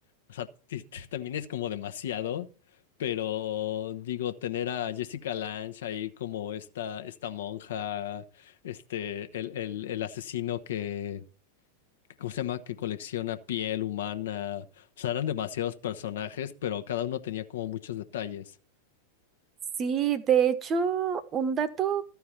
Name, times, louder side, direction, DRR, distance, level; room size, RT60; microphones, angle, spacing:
voice 1, 0.3-2.5 3.0-11.2 12.2-18.5, left 11 dB, 60° left, 0.9 m, -33 dB
voice 2, 19.8-22.0, right 8 dB, 25° right, 1.0 m, -26 dB
13.5 x 4.6 x 7.2 m
figure-of-eight pair, 90°, 0 cm